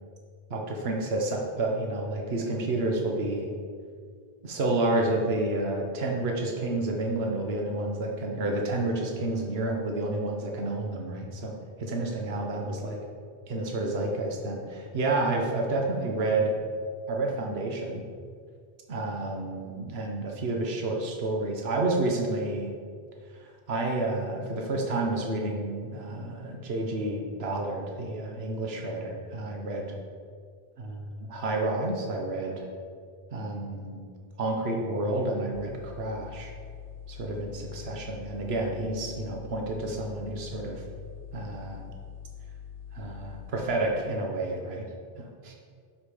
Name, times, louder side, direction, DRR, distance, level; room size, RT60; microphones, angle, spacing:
voice 1, 0.5-3.5 4.4-11.5 11.8-13.0 13.5-16.6 17.1-18.0 18.9-22.7 23.4-30.0 30.8-32.7 33.3-34.0 34.4-36.5 37.1-40.8 41.3-41.8 42.9-44.9 45.2-45.5, right 2 dB, 70° right, 1 dB, 1.3 m, -30 dB
sound 1, 35.5-43.5, left 8 dB, 55° left, 0.8 m, -44 dB
12.0 x 5.3 x 5.0 m, 2.1 s
omnidirectional pair, 1.1 m